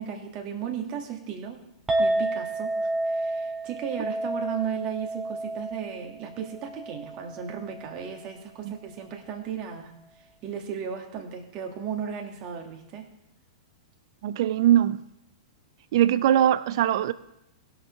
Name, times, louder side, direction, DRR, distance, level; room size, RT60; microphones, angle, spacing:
voice 1, 0.0-1.6 2.0-13.1, right 8 dB, 35° right, 2.0 m, -35 dB
Chink clink, 1.9-8.2, right 2 dB, 10° right, 1.9 m, -30 dB
voice 2, 14.2-15.0 15.9-17.1, right 11 dB, 50° right, 0.5 m, -21 dB
20.0 x 6.6 x 3.6 m
figure-of-eight pair, 100°, 3 cm